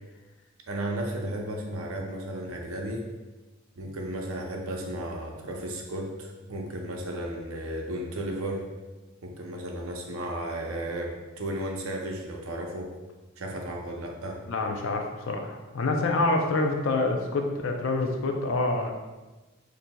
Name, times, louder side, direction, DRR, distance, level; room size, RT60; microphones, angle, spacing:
voice 1, 0.7-3.1 3.8-8.7 9.2-12.9 13.4-14.4, right 1 dB, 90° right, 1 dB, 0.7 m, -34 dB
voice 2, 14.5-18.9, left 2 dB, 70° left, 3 dB, 0.5 m, -27 dB
6.0 x 2.6 x 2.2 m, 1.2 s
head